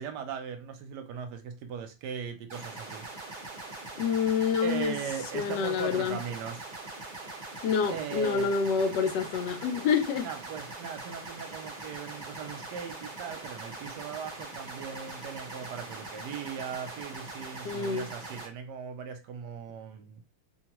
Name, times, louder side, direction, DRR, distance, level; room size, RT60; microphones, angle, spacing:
voice 1, 0.0-3.1 4.6-6.6 7.9-8.5 10.2-20.2, right 7 dB, 75° right, 1.1 m, -39 dB
sound 1, 2.5-18.5, right 2 dB, 45° right, 0.6 m, -42 dB
voice 2, 4.0-5.0 5.3-6.2 7.6-10.3 17.6-18.1, left 6 dB, 75° left, 1.2 m, -27 dB
3.0 x 2.3 x 2.9 m
omnidirectional pair, 1.9 m